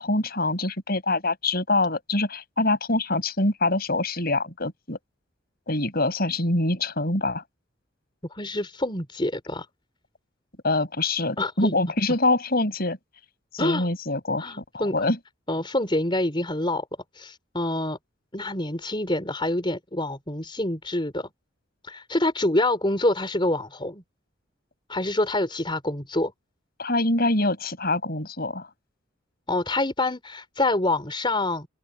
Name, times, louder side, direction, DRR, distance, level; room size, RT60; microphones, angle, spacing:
voice 1, 0.0-5.0 5.7-7.4 10.6-13.0 13.5-15.2 26.8-28.7, left 2 dB, 45° left, 6.4 m, -25 dB
voice 2, 8.3-9.7 11.4-11.8 13.6-13.9 14.4-14.9 15.5-16.9 17.1-18.0 18.3-21.3 21.8-24.0 24.9-26.3 29.5-31.7, left 1 dB, 25° left, 4.3 m, -26 dB
open air
head